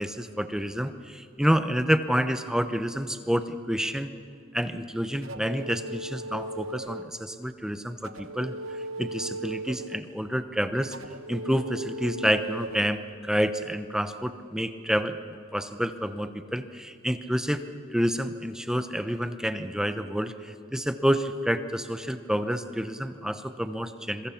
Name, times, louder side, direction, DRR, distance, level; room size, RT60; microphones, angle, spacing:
voice 1, 0.0-4.1 4.5-11.0 11.3-15.2 15.5-17.6 17.9-24.3, equal, 5° right, 9 dB, 0.8 m, -28 dB
sound 1, 5.2-7.1 8.0-10.1 10.9-12.8, right 1 dB, 70° right, 1.0 m, -37 dB
27.0 x 22.5 x 5.9 m, 2.3 s
head